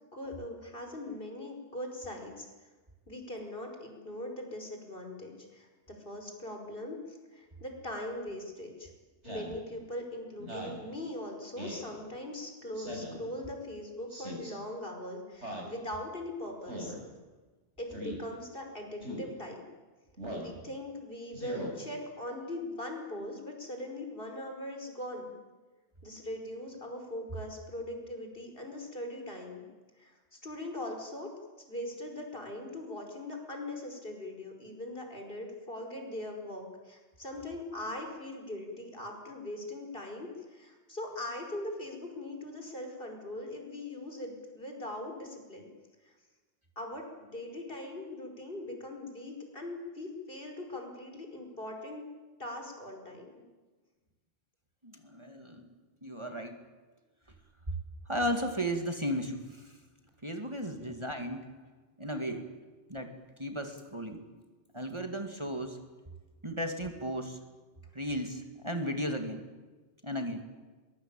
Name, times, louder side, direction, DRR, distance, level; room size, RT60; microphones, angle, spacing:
voice 1, 0.1-2.5 3.1-8.9 9.2-16.9 17.8-19.6 20.3-25.3 26.0-29.7 30.0-31.3 31.7-45.7 46.0-46.1 46.8-52.0 52.4-53.4, left 1 dB, 50° left, 3 dB, 5.4 m, -41 dB
Speech synthesizer, 9.2-9.6 10.4-10.8 11.6-11.9 12.8-13.2 14.1-14.5 15.4-15.7 16.7-17.0 17.9-18.2 19.0-19.3 20.2-20.5 21.3-21.7, equal, 80° right, 6.7 m, -40 dB
voice 2, 54.8-55.7 56.0-56.6 58.1-59.8 60.2-61.5 62.0-62.5 62.9-63.1 63.4-64.2 64.7-65.8 66.4-67.4 67.9-69.5 70.0-70.4, equal, 25° right, 4 dB, 2.2 m, -35 dB
23.0 x 22.5 x 8.9 m, 1.3 s
omnidirectional pair, 1.2 m